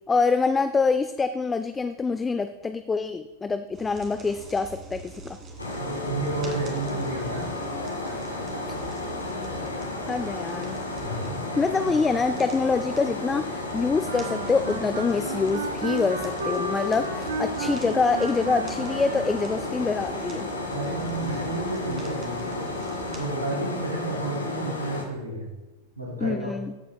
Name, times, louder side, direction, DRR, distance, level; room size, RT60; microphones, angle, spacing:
voice 1, 0.1-5.4 10.1-10.8 11.6-20.5 26.2-26.7, left 4 dB, 15° left, 10 dB, 0.4 m, -25 dB
sound 1, 3.7-23.2, right 3 dB, 30° right, 2.2 m, -44 dB
sound 2, 5.6-25.0, left 2 dB, 80° left, 1.5 m, -33 dB
voice 2, 5.7-8.6 9.0-9.2 11.0-11.7 20.7-22.7 23.2-25.5 26.0-26.5, right 2 dB, 85° right, -4 dB, 3.3 m, -32 dB
sound 3, 14.0-19.7, right 1 dB, 70° right, 2.4 m, -33 dB
14.0 x 8.4 x 2.3 m, 1.1 s
figure-of-eight pair, 90°, 0 cm